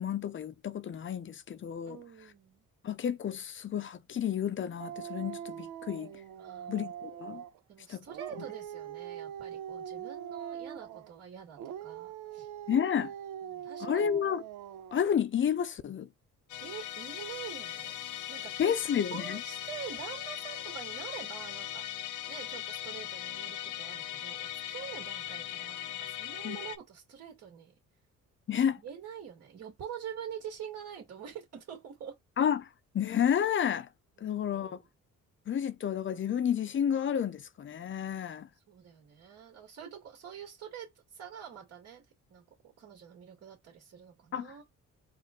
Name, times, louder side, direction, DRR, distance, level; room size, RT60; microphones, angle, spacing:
voice 1, 0.0-2.0 2.8-6.1 6.7-7.4 7.9-8.0 12.7-13.1 13.8-14.4 14.9-16.1 18.6-19.4 26.4-26.6 28.5-28.8 32.4-32.7 32.9-33.9 34.2-34.8 35.5-38.5 44.3-44.5, left 8 dB, 40° left, 0.6 m, -30 dB
voice 2, 1.9-2.6 6.4-6.9 7.7-12.5 13.4-14.1 16.6-18.0 18.3-18.7 19.1-27.7 28.8-32.2 34.2-34.9 38.5-44.6, right 8 dB, 60° right, 2.1 m, -46 dB
Dog, 4.8-7.6 8.0-11.1 11.6-15.1, right 10 dB, 85° right, 0.7 m, -42 dB
Musical instrument, 16.5-26.8, left 13 dB, 80° left, 0.5 m, -39 dB
4.2 x 2.5 x 3.8 m
cardioid pair, 90°, 30 cm